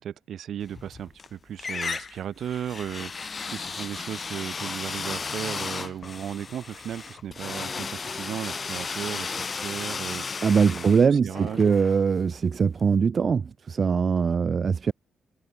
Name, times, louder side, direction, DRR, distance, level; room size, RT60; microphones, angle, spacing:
voice 1, 0.0-10.3 10.7-11.6, right 9 dB, 65° right, 1.0 m, -36 dB
sound 1, 0.7-1.3 1.6-12.5, left 5 dB, 35° left, 3.1 m, -34 dB
voice 2, 10.4-14.9, right 6 dB, 40° right, 0.5 m, -22 dB
cardioid pair, 120°, 0 cm